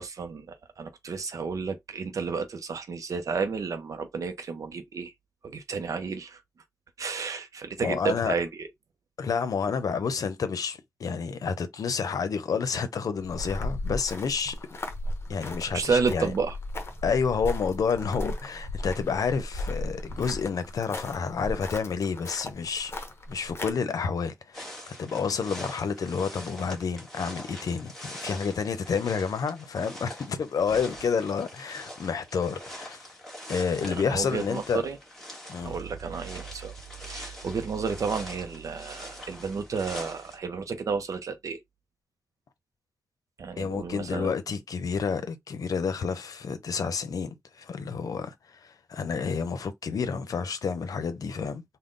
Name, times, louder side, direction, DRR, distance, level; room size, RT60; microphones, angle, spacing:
voice 1, 0.0-5.1 5.4-6.4 7.0-8.7 15.7-16.6 33.8-35.0 35.6-36.7 37.0-41.6 43.4-44.3, right 5 dB, 65° right, 0.5 m, -31 dB
voice 2, 7.8-8.3 9.2-14.6 15.3-16.3 17.0-22.9 23.3-33.1 33.5-34.8 35.5-35.7 43.6-51.6, left 5 dB, 85° left, 0.6 m, -29 dB
sound 1, 13.2-23.7, left 1 dB, 45° left, 0.7 m, -36 dB
sound 2, 24.5-40.4, equal, 5° left, 1.4 m, -44 dB
3.7 x 2.1 x 3.7 m
wide cardioid pair, 170°, 6 cm